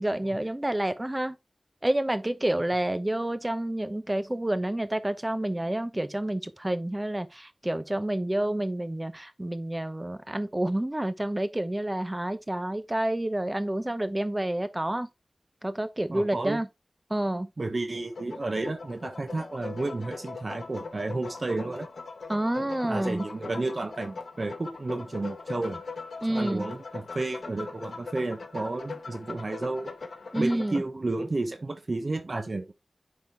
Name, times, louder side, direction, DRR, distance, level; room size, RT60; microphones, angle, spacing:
voice 1, 0.0-1.4 1.8-15.1 15.6-16.7 17.1-17.5 22.3-23.3 26.2-26.7 30.3-30.8, right 1 dB, 20° right, 1.0 m, -29 dB
voice 2, 16.1-16.6 17.6-21.9 22.6-25.8 26.3-29.9 30.3-32.7, right 2 dB, 55° right, 1.2 m, -32 dB
sound 1, 18.0-30.8, left 4 dB, 85° left, 1.0 m, -41 dB
9.7 x 4.3 x 3.4 m
wide cardioid pair, 75°, 0 cm